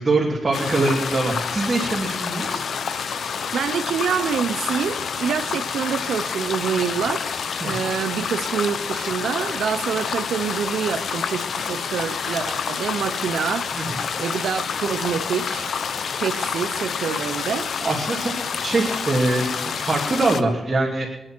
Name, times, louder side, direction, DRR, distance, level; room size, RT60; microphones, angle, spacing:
voice 1, 0.0-2.6 7.6-7.8 13.7-14.0 17.8-18.3 18.6-21.1, right 2 dB, 35° right, -2 dB, 2.9 m, -23 dB
sound 1, 0.5-20.4, left 6 dB, 70° left, 0.9 m, -28 dB
voice 2, 3.5-15.7 16.2-17.7, right 7 dB, 80° right, 8 dB, 0.7 m, -26 dB
23.0 x 9.9 x 4.5 m, 0.95 s
cardioid pair, 65°, 0 cm